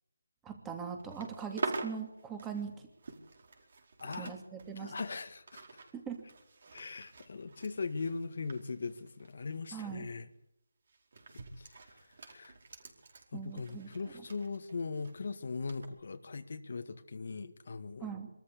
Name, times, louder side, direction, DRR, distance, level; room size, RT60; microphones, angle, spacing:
voice 1, 0.4-2.7 4.2-4.9 5.9-6.2 9.7-10.1 13.3-13.9 18.0-18.3, right 7 dB, 10° right, 4 dB, 2.7 m, -41 dB
sound 1, 1.0-4.3 4.6-9.6 9.8-10.1 10.9-15.1 15.7-15.9, right 4 dB, 55° right, 4.6 m, -45 dB
voice 2, 4.0-4.3 4.8-5.6 6.7-10.3 11.6-12.6 13.3-18.1, left 4 dB, 55° left, 9 dB, 1.7 m, -40 dB
24.0 x 13.5 x 8.3 m, 0.82 s
figure-of-eight pair, 165°, 0 cm